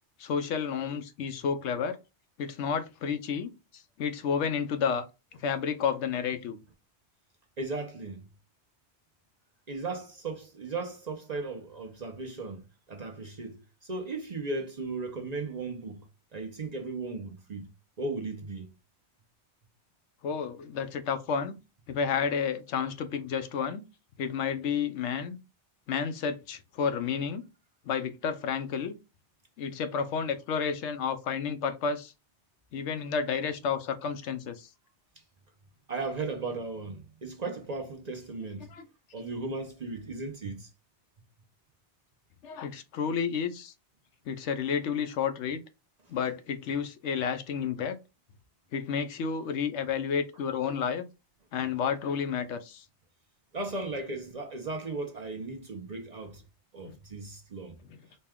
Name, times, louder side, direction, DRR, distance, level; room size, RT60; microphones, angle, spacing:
voice 1, 0.2-2.0 2.4-5.1 5.4-6.6 20.2-21.6 21.9-23.8 24.2-25.4 25.9-27.4 27.9-29.0 29.6-32.1 32.7-34.7 38.7-38.8 42.4-43.7 44.3-45.6 46.1-48.0 48.7-51.0 51.5-52.8 56.8-57.0 57.9-58.0, left 6 dB, 80° left, 0.9 m, -31 dB
voice 2, 7.6-8.3 9.7-12.6 12.9-16.1 16.3-17.7 18.0-18.7 35.9-38.7 39.1-40.7 46.1-46.2 53.5-56.4 56.7-57.8, right 3 dB, 45° right, 0.7 m, -36 dB
4.3 x 2.2 x 3.5 m
omnidirectional pair, 1.2 m